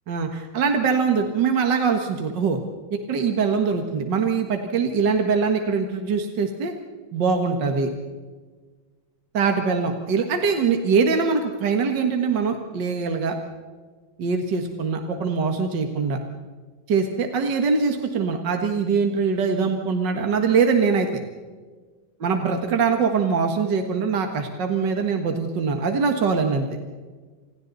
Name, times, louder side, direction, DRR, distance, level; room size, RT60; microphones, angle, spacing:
voice 1, 0.1-2.6 2.9-6.7 7.1-7.9 9.3-13.4 14.2-16.2 16.9-21.1 22.2-26.7, right 5 dB, 60° right, 4 dB, 2.2 m, -23 dB
29.5 x 28.0 x 4.1 m, 1.4 s
omnidirectional pair, 2.2 m